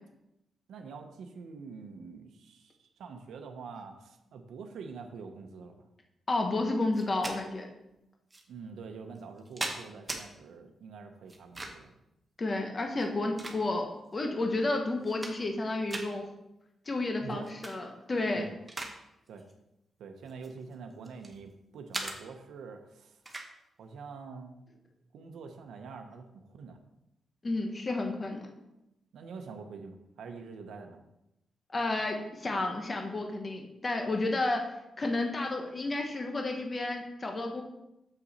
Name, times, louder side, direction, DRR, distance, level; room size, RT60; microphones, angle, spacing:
voice 1, 0.7-5.8 8.5-11.9 17.2-17.5 18.3-18.5 19.3-19.4 20.0-23.2 23.8-24.6 25.1-26.8 29.1-31.0, right 5 dB, 85° right, 5 dB, 0.8 m, -45 dB
voice 2, 6.3-7.7 12.4-16.2 16.9-18.5 27.4-28.5 31.7-34.7 35.0-37.6, left 2 dB, 25° left, 3 dB, 0.8 m, -31 dB
sound 1, 6.9-7.4 8.3-8.4 9.2-10.2 11.3-11.9 12.9-14.0 14.5-14.6 14.9-15.6 15.9-16.1 17.4-17.8 18.2-19.0 19.3-19.5 20.3-21.4 21.9-22.2 23.3-23.5, right 2 dB, 15° right, 0.8 m, -39 dB
6.9 x 5.8 x 4.1 m, 0.89 s
wide cardioid pair, 165°, 0 cm